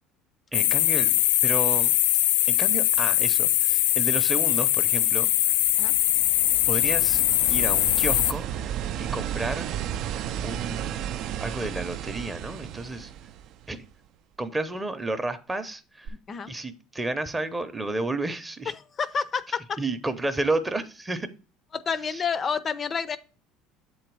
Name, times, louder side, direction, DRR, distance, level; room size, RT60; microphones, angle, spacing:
sound 1, 0.5-8.3, left 14 dB, 90° left, 0.4 m, -22 dB
voice 1, 0.5-1.2 1.4-1.9 2.5-5.3 6.7-7.2 7.5-8.4 9.0-9.7 10.4-11.1 11.4-13.1 13.7-13.8 14.4-16.1 16.5-18.7 19.8-21.3 22.1-22.2, right 2 dB, 15° right, 10 dB, 0.6 m, -31 dB
sound 2, 5.4-13.9 16.1-16.2, right 10 dB, 60° right, 0.3 m, -34 dB
voice 2, 16.1-16.5 18.7-19.8 21.7-23.2, left 6 dB, 30° left, 14 dB, 0.4 m, -29 dB
7.5 x 3.9 x 4.6 m, 0.36 s
supercardioid pair, 120°, 0 cm